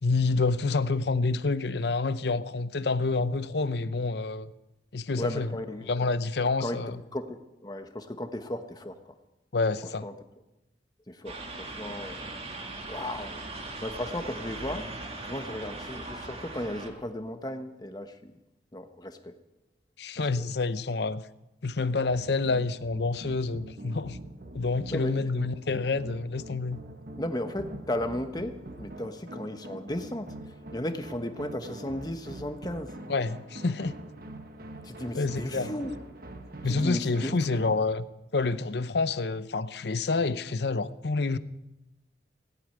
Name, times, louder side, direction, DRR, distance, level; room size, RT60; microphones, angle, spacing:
voice 1, 0.0-4.5 4.9-5.5 5.9-7.0 9.5-10.1 20.0-21.2 21.6-24.2 24.5-26.8 33.1-33.9 35.1-35.7 36.6-38.1 38.3-41.4, left 3 dB, 60° left, 0.7 m, -28 dB
voice 2, 5.2-6.1 6.4-6.8 7.1-9.0 10.0-10.1 11.1-12.3 12.9-13.4 13.8-14.9 15.2-18.3 18.7-19.3 20.2-20.4 24.9-25.1 27.2-32.9 34.8-35.9 36.6-37.4, left 1 dB, 20° left, 1.1 m, -35 dB
sound 1, 11.3-16.9, right 2 dB, 35° right, 2.1 m, -39 dB
sound 2, 22.1-37.8, right 1 dB, 50° right, 1.3 m, -44 dB
18.0 x 8.7 x 9.4 m
head